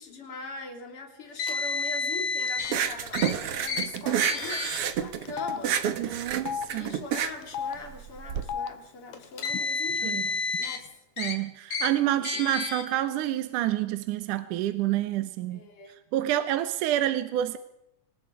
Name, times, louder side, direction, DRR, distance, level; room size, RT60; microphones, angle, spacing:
voice 1, 0.0-5.8 6.7-10.3 10.6-10.9 12.3-12.5 15.5-16.0, left 3 dB, 40° left, 3.9 m, -41 dB
Car, 1.4-2.7 3.1-3.3 3.7-3.8 4.2-4.8 5.6-5.8 6.8-6.9 9.1-10.8 11.2-11.3 11.7-11.9 12.2-12.8, left 4 dB, 60° left, 3.7 m, -30 dB
Telephone, 2.5-2.7 2.9-3.1 4.0-4.1 4.4-4.5 5.3-5.6 6.3-6.7 7.4-7.8 8.4-8.7 9.5-9.6 9.9-10.6, left 7 dB, 80° left, 2.5 m, -33 dB
sound 1, 2.6-8.4, right 9 dB, 60° right, 1.8 m, -29 dB
voice 2, 6.0-6.9 10.0-10.2 11.2-15.6 16.1-17.6, right 13 dB, 75° right, 2.4 m, -28 dB
26.0 x 20.5 x 4.9 m
omnidirectional pair, 3.9 m